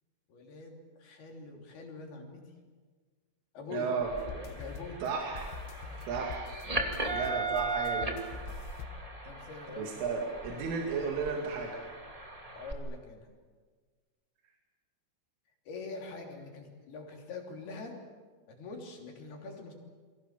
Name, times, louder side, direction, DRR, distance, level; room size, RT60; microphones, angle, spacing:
voice 1, 0.3-2.4 3.5-3.9 4.5-5.0 5.9-6.1 9.2-10.0 12.5-13.3 15.7-18.0 18.5-19.7, left 3 dB, 55° left, 2 dB, 4.9 m, -44 dB
voice 2, 3.7-4.1 5.0-5.5 6.1-6.5 7.1-8.2 9.8-11.8, right 5 dB, 80° right, 0 dB, 5.1 m, -33 dB
sound 1, 4.0-12.7, right 3 dB, 45° right, 0.4 m, -38 dB
sound 2, 4.2-9.5, left 5 dB, 80° left, 3.6 m, -45 dB
29.5 x 23.0 x 7.5 m, 1.5 s
omnidirectional pair, 5.6 m